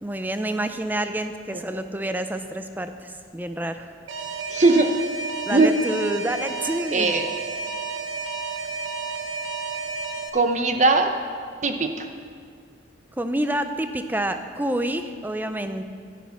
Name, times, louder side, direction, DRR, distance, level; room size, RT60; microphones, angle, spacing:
voice 1, 0.0-3.9 5.5-7.2 13.2-15.9, right 1 dB, 10° right, 8 dB, 0.5 m, -28 dB
Alarm, 4.1-10.3, right 4 dB, 90° right, 1.1 m, -31 dB
voice 2, 4.5-4.9 5.5-5.7 6.9-7.3 10.3-11.1 11.6-12.1, right 3 dB, 40° right, 6 dB, 0.8 m, -19 dB
11.5 x 11.0 x 5.9 m, 2.1 s
head